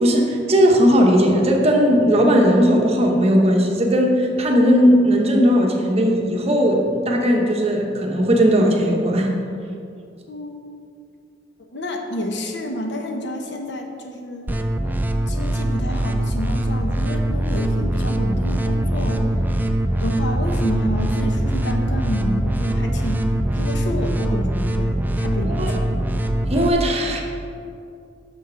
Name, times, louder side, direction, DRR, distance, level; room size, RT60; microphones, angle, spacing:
voice 1, 0.0-9.3 25.4-25.7 26.5-27.2, equal, 35° right, 1 dB, 1.0 m, -17 dB
voice 2, 10.3-10.6 11.7-14.7 15.3-19.2 20.0-23.2 23.5-26.1, equal, 65° left, 3 dB, 0.9 m, -29 dB
sound 1, 14.5-26.7, right 1 dB, 10° right, 0.3 m, -22 dB
6.4 x 6.4 x 5.6 m, 2.5 s
head